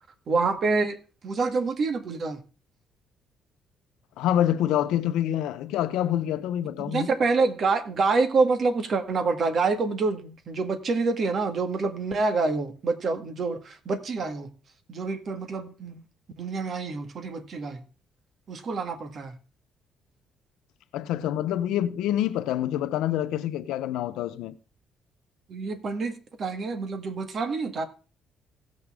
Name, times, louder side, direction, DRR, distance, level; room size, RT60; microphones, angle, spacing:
voice 1, 0.3-1.0 1.2-2.4 6.8-14.5 14.9-16.0 16.4-17.8 18.5-19.4 25.5-27.8, right 4 dB, 50° right, 1.9 m, -27 dB
voice 2, 4.2-7.1 20.9-24.6, left 11 dB, 85° left, 0.9 m, -26 dB
17.0 x 6.6 x 3.7 m
cardioid pair, 95°, 0 cm